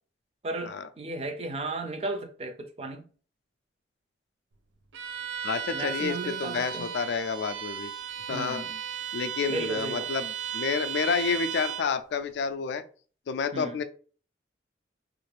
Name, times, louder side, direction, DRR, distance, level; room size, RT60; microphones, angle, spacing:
voice 1, 0.4-3.1 5.7-6.9 8.3-8.8 9.5-10.1 13.5-13.8, right 2 dB, 35° right, 0.4 m, -35 dB
Bowed string instrument, 4.9-11.9, right 9 dB, 85° right, 0.5 m, -35 dB
voice 2, 5.4-7.9 8.3-8.6 9.1-12.8 13.3-13.8, left 5 dB, 70° left, 0.3 m, -29 dB
3.1 x 2.5 x 3.2 m
head